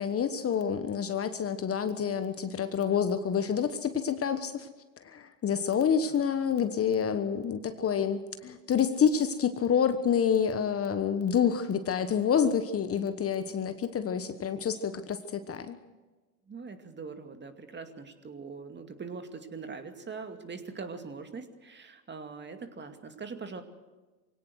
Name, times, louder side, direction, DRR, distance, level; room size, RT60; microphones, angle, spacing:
voice 1, 0.0-4.7 5.0-15.8, left 7 dB, 30° left, 10 dB, 1.3 m, -28 dB
voice 2, 16.5-23.6, right 4 dB, 25° right, 7 dB, 2.4 m, -42 dB
23.0 x 17.5 x 6.4 m, 1.2 s
hypercardioid pair, 90°, 45 cm